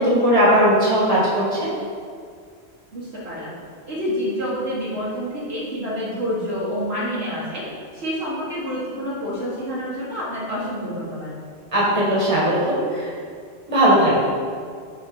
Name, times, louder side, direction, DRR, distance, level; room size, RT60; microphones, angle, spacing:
voice 1, 0.0-1.7 11.7-13.1 13.7-14.1, equal, 25° right, -6 dB, 1.9 m, -18 dB
voice 2, 2.9-3.5 3.9-7.6 7.9-11.3, equal, 55° right, -8 dB, 1.7 m, -28 dB
7.2 x 4.1 x 5.4 m, 2.1 s
omnidirectional pair, 1.3 m